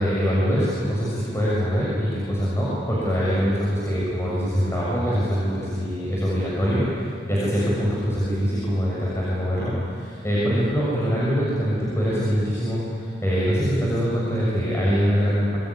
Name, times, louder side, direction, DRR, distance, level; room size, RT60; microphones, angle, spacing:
voice 1, 0.0-15.6, equal, 15° left, -7 dB, 6.7 m, -23 dB
27.0 x 22.5 x 9.8 m, 2.3 s
head